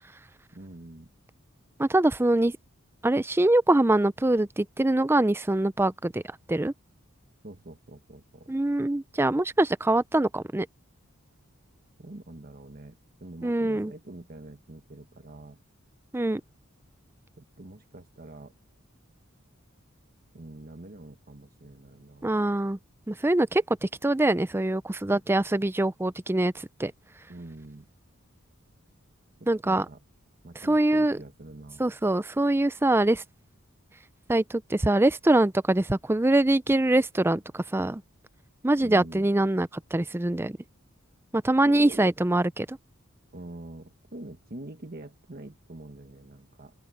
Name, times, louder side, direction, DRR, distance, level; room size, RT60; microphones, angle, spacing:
voice 1, 0.5-1.1 7.4-8.5 12.0-15.6 17.4-18.5 20.3-22.4 25.1-25.2 27.3-27.9 29.6-30.0 30.4-31.8 38.8-39.3 41.6-42.1 43.3-46.7, right 1 dB, 45° right, 1.3 m, -45 dB
voice 2, 1.8-2.5 3.0-6.2 6.5-6.7 8.5-10.7 13.4-13.9 16.1-16.4 22.2-22.8 23.1-26.9 29.5-29.9 30.6-31.2 31.8-33.2 34.3-38.0 38.6-40.5 41.3-42.8, right 1 dB, 10° right, 0.5 m, -24 dB
open air
head